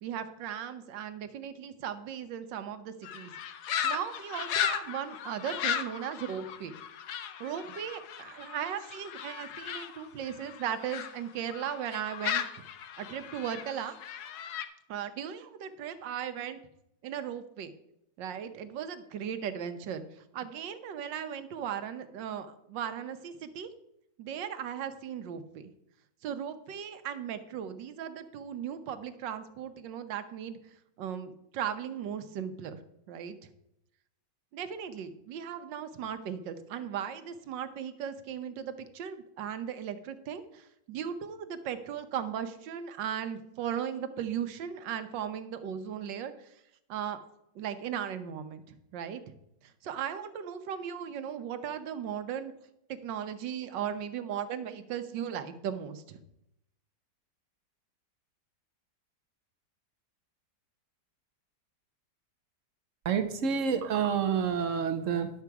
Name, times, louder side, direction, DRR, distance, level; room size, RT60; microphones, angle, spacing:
voice 1, 0.0-3.3 3.8-6.8 7.4-12.4 13.0-14.0 14.9-16.6 17.0-17.7 18.2-23.7 24.2-25.7 26.2-30.6 31.0-32.8 33.1-33.3 34.5-46.5 46.9-47.2 47.5-49.2 49.6-52.5 52.9-56.2, right 8 dB, 90° right, 10 dB, 1.5 m, -37 dB
sound 1, 3.0-11.1 11.5-14.7, left 9 dB, 70° left, 1.2 m, -36 dB
voice 2, 63.0-65.3, right 7 dB, 55° right, 7 dB, 1.0 m, -28 dB
11.0 x 6.9 x 4.6 m, 0.80 s
omnidirectional pair, 1.9 m